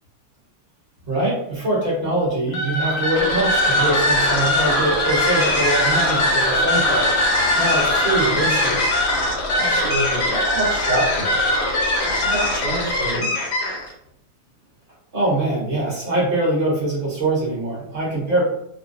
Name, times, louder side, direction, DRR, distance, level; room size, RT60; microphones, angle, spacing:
voice 1, 1.1-7.1 7.6-8.9 15.1-18.5, right 2 dB, 40° right, -5 dB, 1.1 m, -23 dB
sound 1, 2.5-13.9, left 1 dB, 60° left, 0.7 m, -20 dB
voice 2, 9.5-11.4 12.0-13.3, right 1 dB, 80° right, -7 dB, 1.9 m, -26 dB
3.7 x 2.1 x 2.5 m, 0.76 s
omnidirectional pair, 1.8 m